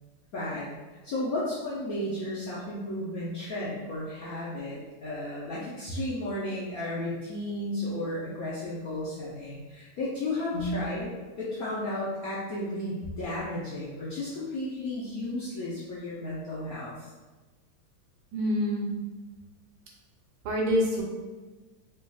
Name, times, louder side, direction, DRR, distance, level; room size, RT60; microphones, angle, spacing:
voice 1, 0.3-0.7 1.0-11.1 11.4-17.1, left 1 dB, 70° left, -9 dB, 0.8 m, -33 dB
voice 2, 10.5-10.8 18.3-18.9 20.4-21.0, equal, 90° right, -2 dB, 1.7 m, -27 dB
3.3 x 3.3 x 2.3 m, 1.3 s
omnidirectional pair, 2.3 m